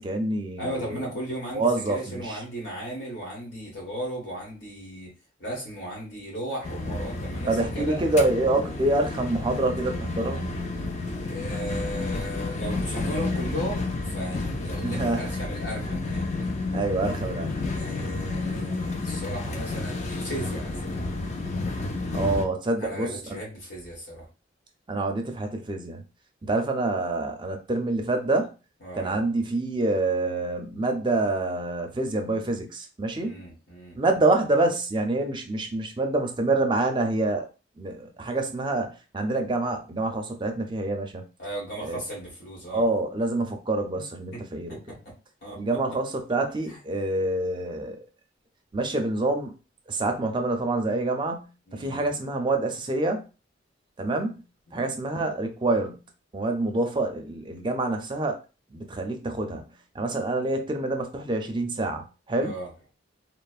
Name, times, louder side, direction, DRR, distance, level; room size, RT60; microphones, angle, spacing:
voice 1, 0.0-1.1 1.5-2.4 7.5-10.4 14.8-15.4 16.7-17.6 22.1-23.4 24.9-26.0 26.4-28.5 28.9-33.4 33.9-37.5 37.8-41.2 41.8-42.0 42.7-44.8 45.5-48.0 48.7-49.5 49.9-53.2 54.0-54.4 54.7-56.0 56.3-58.4 58.7-59.7 59.9-62.6, right 2 dB, 25° right, 4 dB, 0.4 m, -27 dB
voice 2, 0.6-5.1 5.4-8.0 11.1-16.2 17.7-20.9 22.8-24.3 28.8-29.2 33.1-34.0 41.4-42.8 44.0-44.1 44.3-44.4 44.7-45.0 45.4-45.6 46.7-46.8 51.7-52.0 54.7-54.9 62.4-62.7, right 1 dB, 70° left, -3 dB, 1.4 m, -36 dB
sound 1, 6.6-22.5, left 2 dB, 40° left, 0.4 m, -31 dB
3.1 x 2.0 x 2.4 m, 0.32 s
head